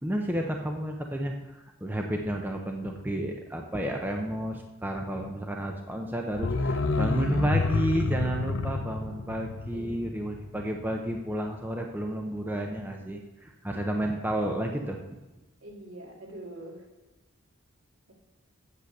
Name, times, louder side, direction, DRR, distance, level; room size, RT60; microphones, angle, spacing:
voice 1, 0.0-15.0, right 1 dB, 10° right, 2 dB, 0.7 m, -31 dB
sound 1, 6.3-11.1 11.4-11.5, left 3 dB, 70° left, 0.6 m, -29 dB
voice 2, 9.7-10.0 15.6-16.8 18.1-18.2, right 1 dB, 80° right, -1 dB, 2.4 m, -44 dB
8.3 x 6.9 x 6.4 m, 1.1 s
head